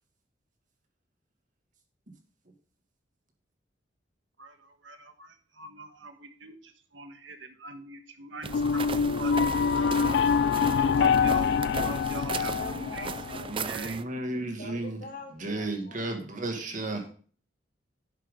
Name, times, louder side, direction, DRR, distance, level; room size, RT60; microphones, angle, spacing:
voice 1, 4.4-10.1 10.8-14.0, right 3 dB, 90° right, 7 dB, 1.6 m, -43 dB
sound 1, 8.4-14.0, right 5 dB, 30° right, 0.4 m, -37 dB
sound 2, 8.5-13.5, left 6 dB, 65° left, 0.3 m, -25 dB
voice 2, 12.5-14.0 14.3-16.1, left 2 dB, 50° left, 1 dB, 3.0 m, -44 dB
voice 3, 13.5-15.0 15.3-17.1, right 2 dB, 45° right, 3 dB, 2.2 m, -33 dB
11.0 x 7.4 x 3.8 m, 0.42 s
head